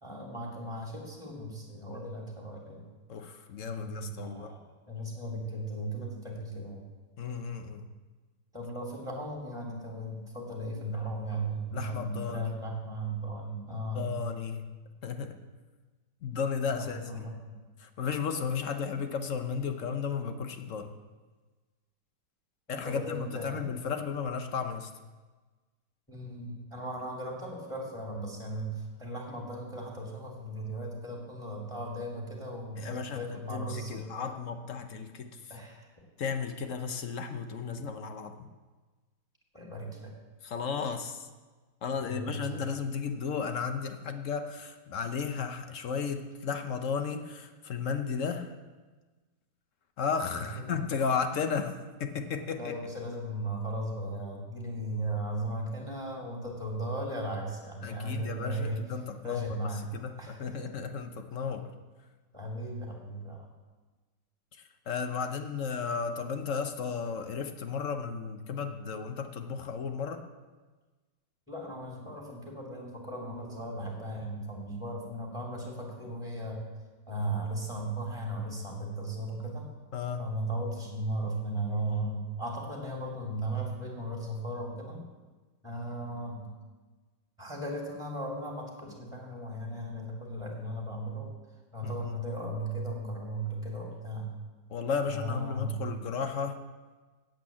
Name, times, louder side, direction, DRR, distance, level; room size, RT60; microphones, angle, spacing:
voice 1, 0.0-2.9 3.8-6.8 8.5-14.1 16.7-17.6 22.7-23.7 26.1-34.3 35.5-35.9 39.5-40.1 42.0-42.6 50.5-50.8 52.5-58.8 59.2-59.9 60.2-60.7 62.3-63.5 71.5-76.6 77.1-79.7 80.2-85.0 85.6-86.5 87.4-91.3 91.7-94.4 95.1-95.8, right 1 dB, 5° left, -3 dB, 2.4 m, -36 dB
voice 2, 3.1-4.5 7.2-7.9 11.7-12.5 13.7-14.7 15.0-15.3 16.2-17.3 17.8-20.9 22.7-24.9 32.8-35.5 36.2-38.5 40.4-41.3 41.8-48.5 50.0-52.7 57.8-61.7 64.9-70.2 79.9-80.3 91.8-92.2 94.7-96.6, left 6 dB, 55° left, 7 dB, 0.9 m, -34 dB
9.1 x 8.2 x 8.5 m, 1.3 s
omnidirectional pair, 2.2 m